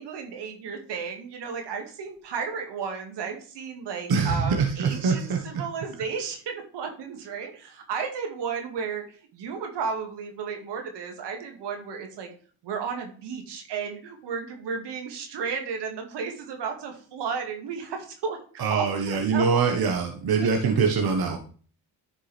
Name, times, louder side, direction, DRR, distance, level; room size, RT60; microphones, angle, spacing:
voice 1, 0.0-12.3 12.6-18.4 18.7-19.6 20.4-20.5, right 5 dB, 80° right, 4 dB, 2.1 m, -33 dB
voice 2, 4.1-5.4 18.6-21.4, right 5 dB, 60° right, 3 dB, 1.5 m, -23 dB
10.0 x 5.3 x 3.4 m, 0.42 s
supercardioid pair, 60°, 41 cm